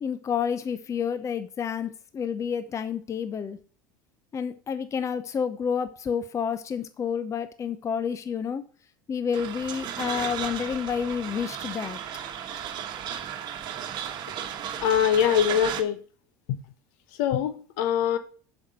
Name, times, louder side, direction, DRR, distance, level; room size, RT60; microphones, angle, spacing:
voice 1, 0.0-3.6 4.3-8.6 9.1-12.0, left 7 dB, 30° left, 0.7 m, -29 dB
sound 1, 9.3-15.8, right 9 dB, 45° right, 1.3 m, -34 dB
voice 2, 14.8-16.0 17.2-18.2, left 9 dB, 65° left, 1.0 m, -23 dB
7.3 x 6.2 x 5.3 m
hypercardioid pair, 80°, 10 cm